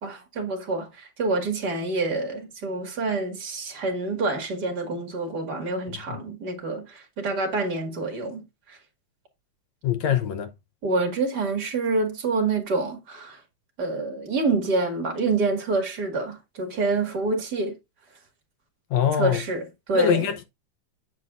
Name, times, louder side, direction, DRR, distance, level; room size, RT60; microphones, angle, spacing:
voice 1, 0.0-8.8 10.8-13.4 13.8-17.8 19.2-20.3, right 3 dB, 35° right, 2.1 m, -27 dB
voice 2, 9.8-10.5 18.9-19.4 19.9-20.5, left 7 dB, 70° left, 2.0 m, -23 dB
8.4 x 6.5 x 2.5 m
omnidirectional pair, 3.6 m